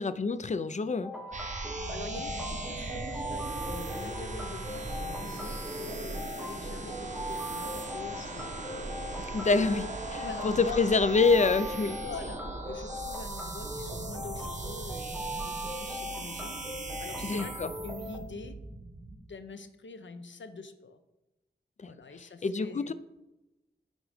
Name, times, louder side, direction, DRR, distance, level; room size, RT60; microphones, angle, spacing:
voice 1, 0.0-1.1 9.2-9.8 10.1-12.0 17.2-17.7 21.8-21.9 22.4-22.9, left 4 dB, 40° left, 14 dB, 0.4 m, -26 dB
sound 1, 1.0-18.2, equal, 5° right, 0.9 m, -40 dB
sound 2, 1.3-19.2, right 2 dB, 40° right, 1.0 m, -39 dB
voice 2, 1.9-8.9 9.5-9.7 10.2-10.9 12.0-16.6 17.0-17.5 17.8-18.5 19.2-21.0 21.8-22.9, left 4 dB, 80° left, 9 dB, 0.7 m, -44 dB
9.9 x 3.9 x 4.9 m, 0.99 s
wide cardioid pair, 80°, 19 cm